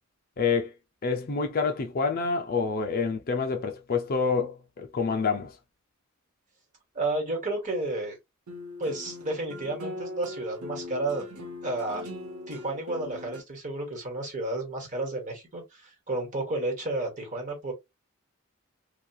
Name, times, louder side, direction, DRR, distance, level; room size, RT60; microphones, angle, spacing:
voice 1, 0.4-0.7 1.0-5.5, left 5 dB, 45° left, 0.5 m, -27 dB
voice 2, 6.9-8.1 8.8-11.3 11.6-12.0 12.5-17.7, right 2 dB, 35° right, 1.2 m, -32 dB
sound 1, 8.5-13.4, left 1 dB, 80° right, 0.9 m, -40 dB
2.8 x 2.3 x 2.3 m
head